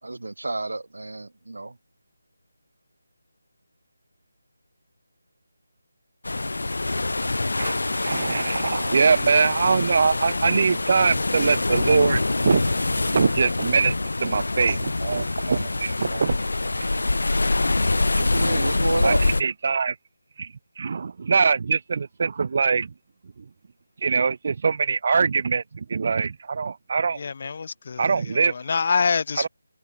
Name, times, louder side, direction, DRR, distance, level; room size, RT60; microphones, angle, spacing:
voice 1, 0.0-1.8 18.2-19.2, right 2 dB, 85° right, 3.4 m, -29 dB
sound 1, 6.2-19.4, left 2 dB, 75° left, 1.8 m, -25 dB
voice 2, 7.6-16.4 16.8-16.9 18.2-18.3 19.0-20.0 20.4-22.9 24.0-27.2 28.0-28.5 29.4-29.5, right 5 dB, 30° right, 0.6 m, -23 dB
voice 3, 27.2-28.4 28.7-29.5, left 5 dB, 30° left, 1.2 m, -26 dB
figure-of-eight pair, 180°, 0 cm